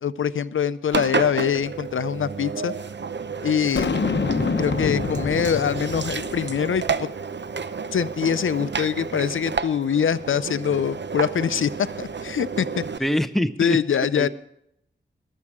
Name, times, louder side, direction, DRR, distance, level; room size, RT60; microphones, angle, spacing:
voice 1, 0.0-2.7 3.4-3.9 4.6-7.1 7.9-11.7 12.0-12.8 13.6-14.3, left 8 dB, 90° left, 15 dB, 0.5 m, -24 dB
Engine, 0.9-13.0, right 5 dB, 65° right, 0.7 m, -31 dB
Boom, 3.8-7.1, left 4 dB, 65° left, 0.9 m, -27 dB
voice 2, 13.0-13.8 14.2-14.3, equal, ahead, 10 dB, 0.8 m, -23 dB
20.5 x 7.5 x 4.8 m, 0.78 s
wide cardioid pair, 65°, 20 cm